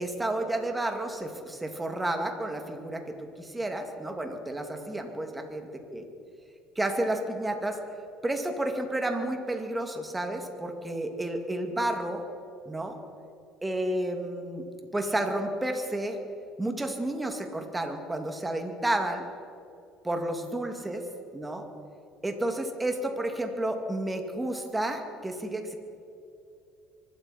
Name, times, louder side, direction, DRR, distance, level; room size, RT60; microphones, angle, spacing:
voice 1, 0.0-3.0 3.4-6.0 6.8-7.8 8.2-12.2 12.7-13.0 13.6-14.7 14.9-16.2 16.6-19.2 20.0-21.0 21.3-21.7 22.2-25.8, right 1 dB, 15° right, 4 dB, 2.6 m, -31 dB
24.0 x 12.5 x 4.5 m, 2.6 s
hypercardioid pair, 65°, 0 cm